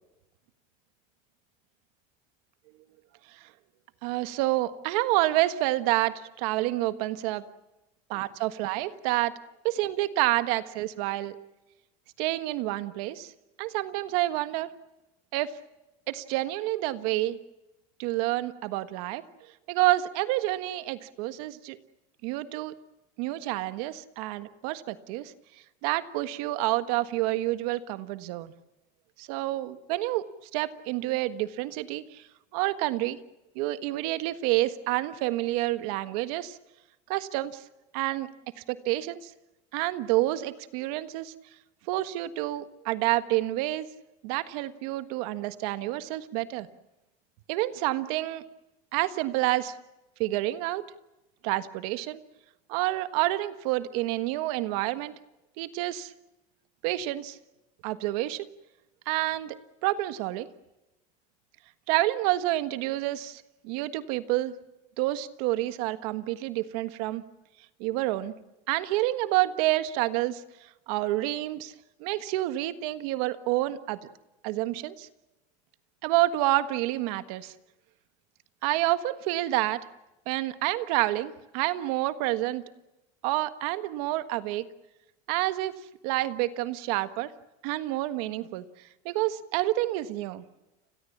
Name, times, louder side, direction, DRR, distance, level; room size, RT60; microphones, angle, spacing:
voice 1, 4.0-7.4 8.1-9.3 9.6-11.4 12.2-13.3 13.6-14.7 15.3-15.5 16.1-17.4 18.0-19.2 19.7-21.8 22.2-22.7 23.2-25.3 25.8-28.5 29.2-30.2 30.5-32.2 32.5-33.2 33.5-36.6 37.1-37.6 37.9-38.3 38.7-39.3 39.7-41.3 41.9-43.9 44.2-46.7 47.5-48.4 48.9-49.7 50.2-50.9 51.4-52.2 52.7-55.1 55.6-56.1 56.8-57.4 57.8-58.5 59.0-59.6 59.8-60.5 61.9-64.5 65.0-67.2 67.8-68.3 68.7-70.4 70.9-71.7 72.0-74.0 74.4-75.1 76.0-77.5 78.6-79.8 80.3-82.6 83.2-84.6 85.3-87.3 87.6-88.6 89.0-90.4, right 16 dB, 75° right, 11 dB, 1.5 m, -28 dB
29.5 x 21.5 x 7.3 m, 0.99 s
supercardioid pair, 130°, 19 cm